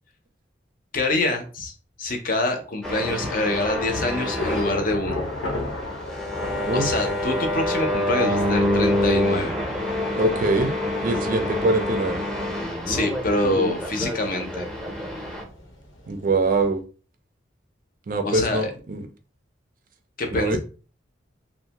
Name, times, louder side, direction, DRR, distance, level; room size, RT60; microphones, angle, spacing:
voice 1, 0.9-1.7 2.0-5.2 6.7-9.5 12.9-14.7 18.2-18.7 20.2-20.6, left 2 dB, 45° left, 4 dB, 0.6 m, -25 dB
sound 1, 2.8-15.4, left 1 dB, 5° left, 0.6 m, -26 dB
Thunder / Rain, 3.1-16.7, left 1 dB, 85° left, 0.7 m, -37 dB
voice 2, 10.2-10.7 11.0-12.2 16.1-16.8 18.1-19.1 20.3-20.6, right 2 dB, 45° right, 7 dB, 0.4 m, -23 dB
2.6 x 2.1 x 2.8 m, 0.37 s
head